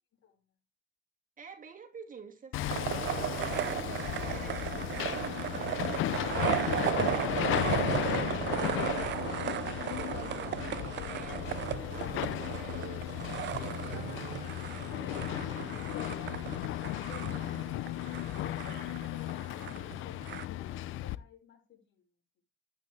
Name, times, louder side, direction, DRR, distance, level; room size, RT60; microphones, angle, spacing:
voice 1, 0.2-0.5 18.3-22.1, left 7 dB, 65° left, 6.0 m, -54 dB
voice 2, 1.4-2.9 3.4-9.4 9.9-16.0, right 6 dB, 40° right, 2.7 m, -50 dB
Hammer, 2.5-21.2, left 14 dB, 85° left, 0.7 m, -35 dB
sound 1, 2.7-20.4, right 13 dB, 65° right, 0.5 m, -36 dB
12.0 x 8.7 x 3.6 m
cardioid pair, 90°, 20 cm